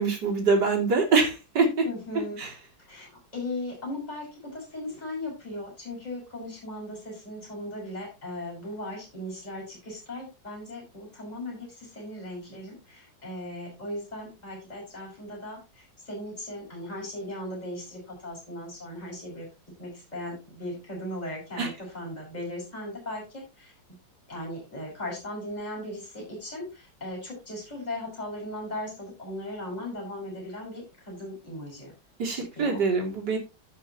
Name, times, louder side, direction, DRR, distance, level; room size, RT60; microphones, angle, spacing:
voice 1, 0.0-1.9 2.4-2.5 21.6-21.7 32.2-33.4, right 4 dB, 60° right, -1 dB, 3.7 m, -24 dB
voice 2, 1.8-2.4 2.9-19.5 19.8-23.7 24.3-31.9 32.3-32.8, left 1 dB, 20° left, -3 dB, 6.1 m, -38 dB
16.5 x 6.2 x 3.0 m, 0.27 s
omnidirectional pair, 2.1 m